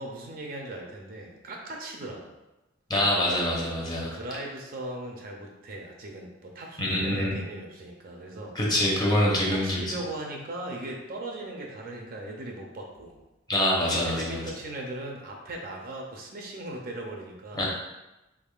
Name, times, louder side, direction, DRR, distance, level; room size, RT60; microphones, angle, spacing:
voice 1, 0.0-2.3 4.0-8.6 9.5-13.2 14.0-17.6, right 1 dB, 50° right, 1 dB, 0.5 m, -38 dB
voice 2, 2.9-4.1 6.8-7.3 8.5-9.8 13.5-14.4 17.5-17.7, left 1 dB, 20° left, -3 dB, 0.8 m, -25 dB
3.6 x 3.5 x 2.4 m, 0.99 s
head